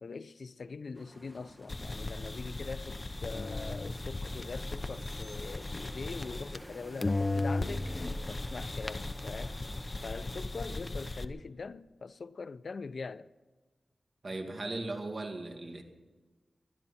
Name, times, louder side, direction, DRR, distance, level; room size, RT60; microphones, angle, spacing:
voice 1, 0.0-7.9 8.3-9.7 10.0-13.3, left 4 dB, 65° left, 0.5 m, -42 dB
sound 1, 0.9-10.5, equal, 5° right, 1.4 m, -52 dB
sound 2, 1.7-6.7 7.0-11.2, left 2 dB, 30° left, 0.8 m, -36 dB
voice 2, 14.2-15.8, right 2 dB, 45° right, 2.3 m, -37 dB
22.0 x 12.5 x 4.4 m
wide cardioid pair, 115°, 0 cm